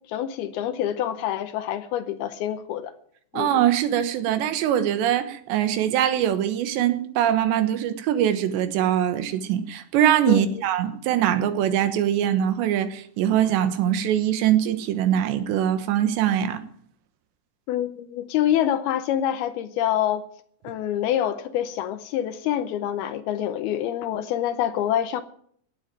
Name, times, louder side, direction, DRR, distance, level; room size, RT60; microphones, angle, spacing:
voice 1, 0.1-2.9 3.3-3.6 10.3-10.6 17.7-20.2 20.6-25.2, left 11 dB, 75° left, 2.5 m, -26 dB
voice 2, 3.3-16.6, right 10 dB, 85° right, 3.5 m, -22 dB
17.5 x 8.0 x 9.0 m
omnidirectional pair, 4.9 m